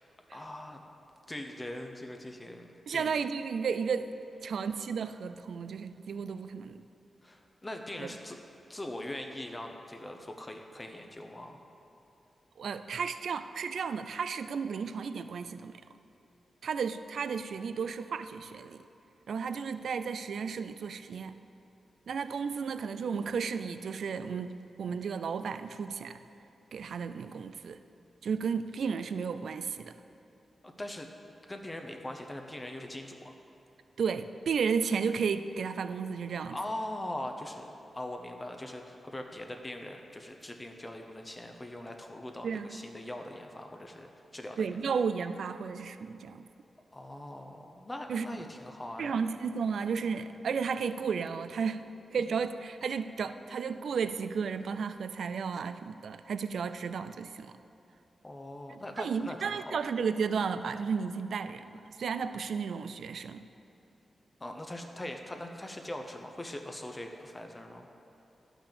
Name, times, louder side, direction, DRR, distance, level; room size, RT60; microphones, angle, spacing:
voice 1, 0.3-0.8 1.3-3.2 7.2-8.4 8.7-11.6 30.6-31.1 31.5-33.3 36.5-37.7 37.9-44.7 46.9-49.2 58.2-59.8 64.4-67.9, left 1 dB, 15° left, 4 dB, 0.7 m, -41 dB
voice 2, 2.9-4.1 4.4-6.8 8.0-8.1 12.6-15.7 16.6-18.8 19.3-21.4 22.1-26.2 26.7-27.8 28.2-29.9 34.0-36.6 42.4-42.8 44.6-46.4 48.1-48.3 49.0-51.8 52.1-57.5 58.7-63.4, right 6 dB, 80° right, 11 dB, 0.3 m, -33 dB
12.0 x 5.9 x 6.7 m, 2.8 s
wide cardioid pair, 120°, 0 cm